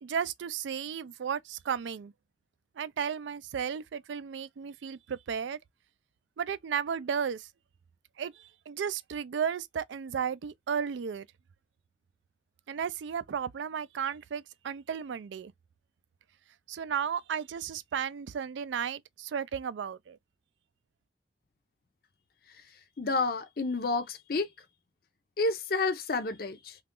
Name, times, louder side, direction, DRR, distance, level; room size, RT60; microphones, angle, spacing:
voice 1, 0.0-2.1 2.8-5.6 6.4-7.5 8.2-11.3 12.7-15.5 16.7-20.2, right 7 dB, 85° right, 0.4 m, -34 dB
voice 2, 23.0-24.5 25.4-26.8, left 3 dB, 55° left, 0.5 m, -30 dB
2.9 x 2.3 x 3.6 m
head